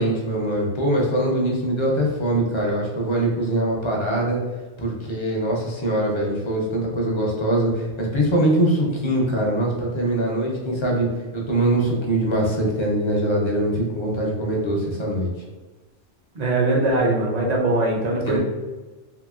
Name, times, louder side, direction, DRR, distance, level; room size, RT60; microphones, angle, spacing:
voice 1, 0.0-4.4 4.8-11.1 11.3-15.3 18.2-18.4, right 1 dB, 45° left, -2 dB, 0.4 m, -22 dB
voice 2, 16.3-18.4, right 2 dB, 50° right, -2 dB, 0.5 m, -21 dB
2.8 x 2.7 x 2.3 m, 1.2 s
omnidirectional pair, 1.2 m